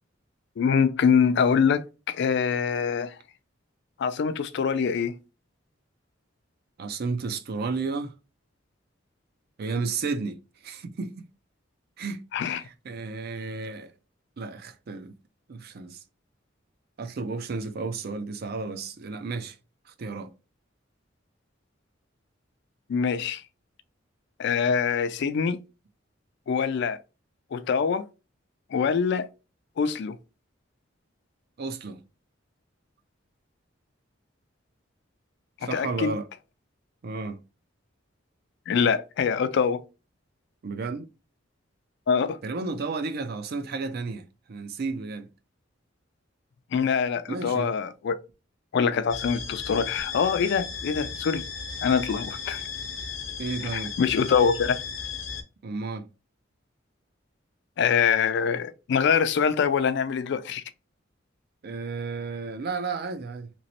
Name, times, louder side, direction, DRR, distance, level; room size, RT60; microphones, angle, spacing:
voice 1, 0.6-3.2 4.0-5.1 12.3-12.6 22.9-23.4 24.4-25.6 26.5-27.0 27.5-28.1 28.7-29.3 29.8-30.2 35.7-36.1 38.7-39.8 42.1-42.4 46.7-48.2 48.7-51.4 51.8-52.6 53.7-54.8 57.8-60.6, left 6 dB, 60° left, 0.3 m, -24 dB
voice 2, 6.8-8.1 9.6-11.3 12.0-13.9 14.4-15.1 15.5-16.0 17.0-19.6 19.9-20.3 31.6-32.0 35.6-36.3 37.0-37.4 40.6-41.1 42.4-45.3 47.3-47.7 53.4-54.0 55.6-56.1 61.6-63.5, right 4 dB, 55° right, 0.4 m, -33 dB
sound 1, 49.1-55.4, left 6 dB, 80° left, 0.7 m, -35 dB
3.0 x 3.0 x 2.8 m
head